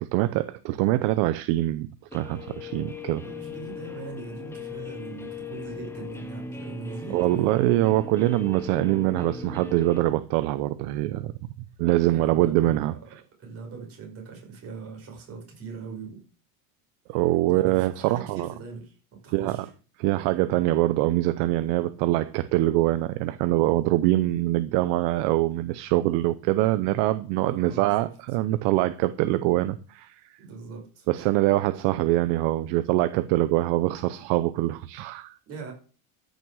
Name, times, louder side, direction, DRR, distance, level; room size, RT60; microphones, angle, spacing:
voice 1, 0.0-3.2 7.1-11.3 11.8-12.9 17.1-18.5 19.3-19.6 20.0-30.2 31.1-35.3, right 16 dB, 60° right, 0.8 m, -24 dB
Guitar, 2.1-10.0, left 4 dB, 5° left, 1.0 m, -38 dB
voice 2, 3.1-7.5 12.0-13.0 13.4-16.2 17.5-19.7 27.4-28.1 30.4-31.1 35.5-35.7, right 4 dB, 30° right, 5.2 m, -41 dB
13.5 x 6.5 x 6.4 m
cardioid pair, 165°, 44 cm